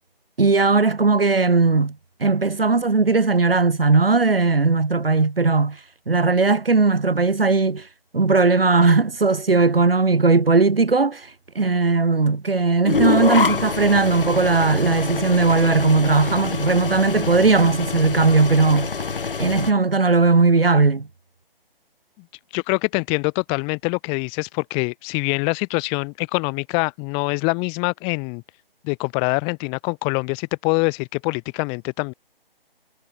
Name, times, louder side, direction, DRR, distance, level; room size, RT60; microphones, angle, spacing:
voice 1, 0.4-5.8 6.1-7.9 8.1-11.3 11.5-18.9 19.4-21.1, right 3 dB, 75° right, 3.3 m, -18 dB
sound 1, 12.9-19.7, left 5 dB, 65° left, 2.6 m, -26 dB
voice 2, 22.5-28.4 28.8-32.1, left 37 dB, 20° left, 3.0 m, -24 dB
figure-of-eight pair, 145°, 29 cm